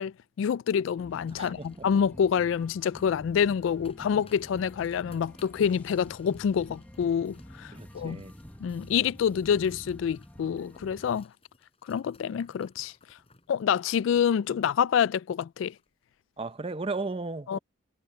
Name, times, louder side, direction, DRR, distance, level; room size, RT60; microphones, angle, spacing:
voice 1, 0.0-8.2 8.6-11.3 11.8-12.9 13.5-15.7 17.5-17.6, left 7 dB, 70° left, 0.3 m, -27 dB
sound 1, 1.0-11.2, equal, 10° left, 1.1 m, -48 dB
sound 2, 1.3-15.1 15.4-15.5 15.7-16.0 16.4-16.6, left 4 dB, 30° left, 5.8 m, -62 dB
voice 2, 1.3-1.9 7.7-8.3 16.4-17.6, right 3 dB, 30° right, 0.8 m, -35 dB
head